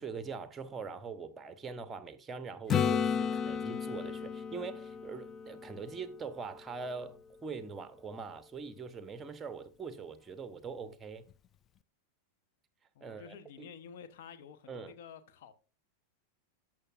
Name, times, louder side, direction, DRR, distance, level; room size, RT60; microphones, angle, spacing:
voice 1, 0.0-11.3 13.0-13.7 14.7-14.9, right 5 dB, 15° right, 0.8 m, -43 dB
Acoustic guitar / Strum, 2.7-6.5 11.3-11.4, left 7 dB, 25° left, 0.4 m, -33 dB
voice 2, 12.9-15.5, left 7 dB, 55° left, 0.8 m, -50 dB
13.5 x 6.0 x 2.4 m
figure-of-eight pair, 90°, 0 cm